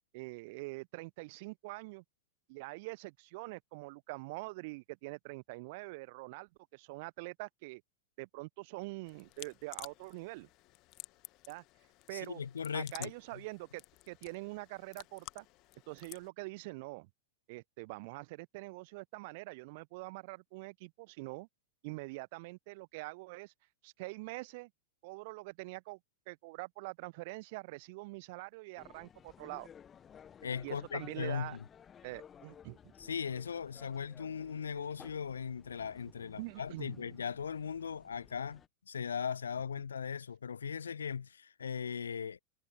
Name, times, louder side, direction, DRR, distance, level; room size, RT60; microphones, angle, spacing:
voice 1, 0.1-2.0 2.5-7.8 8.2-10.5 11.5-11.6 12.1-12.4 12.7-15.5 15.9-17.1 17.5-21.5 21.8-23.5 23.8-24.7 25.0-26.0 26.3-29.7 30.6-31.6 32.0-32.9 36.4-37.2, right 25 dB, 50° right, 0.6 m, -44 dB
sound 1, 9.1-16.3, left 21 dB, 40° left, 1.4 m, -52 dB
voice 2, 12.1-13.1 30.4-31.6 33.0-42.4, left 7 dB, 70° left, 0.5 m, -38 dB
sound 2, 28.8-38.7, left 8 dB, 25° left, 0.8 m, -57 dB
figure-of-eight pair, 90°, 0 cm